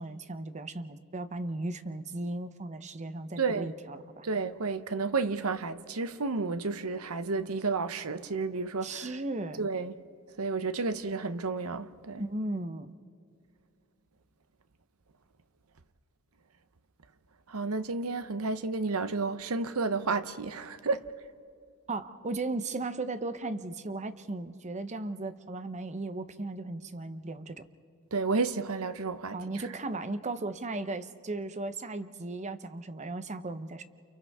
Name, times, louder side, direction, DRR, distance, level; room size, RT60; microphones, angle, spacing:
voice 1, 0.0-4.3 8.8-9.6 12.2-13.0 21.9-27.6 29.3-33.8, right 2 dB, 35° right, 0.8 m, -36 dB
voice 2, 3.4-3.7 4.2-9.2 9.6-9.9 10.4-12.2 17.5-21.1 28.1-29.4, right 4 dB, 75° right, 0.9 m, -31 dB
29.5 x 29.5 x 3.6 m
head